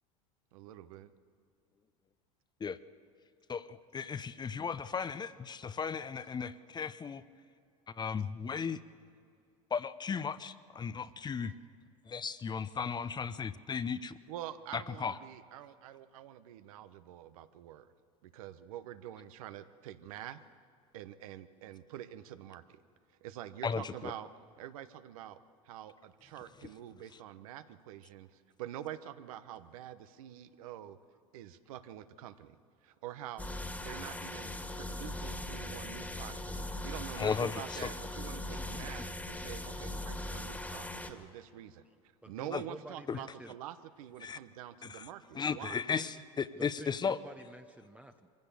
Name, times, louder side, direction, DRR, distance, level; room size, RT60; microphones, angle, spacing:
voice 1, 0.5-1.1 14.3-17.9 18.2-20.4 20.9-22.8 23.2-24.3 24.6-25.4 25.6-31.0 31.3-32.6 32.8-41.8 42.3-45.7, right 12 dB, 75° right, 12 dB, 1.0 m, -46 dB
voice 2, 3.5-7.2 7.9-8.8 9.7-11.5 12.1-14.2 14.7-15.2 23.6-24.1 37.2-37.9 38.7-38.9 42.5-42.6 43.1-43.2 44.2-44.4 44.8-45.1 45.3-47.2, left 6 dB, 25° left, 14 dB, 0.7 m, -36 dB
sound 1, 33.4-41.1, left 1 dB, 10° left, 1.9 m, -40 dB
voice 3, 42.2-43.5 46.0-46.2 46.5-48.3, right 2 dB, 5° right, 6 dB, 0.8 m, -50 dB
24.0 x 16.0 x 6.9 m, 2.4 s
hypercardioid pair, 90°, 18 cm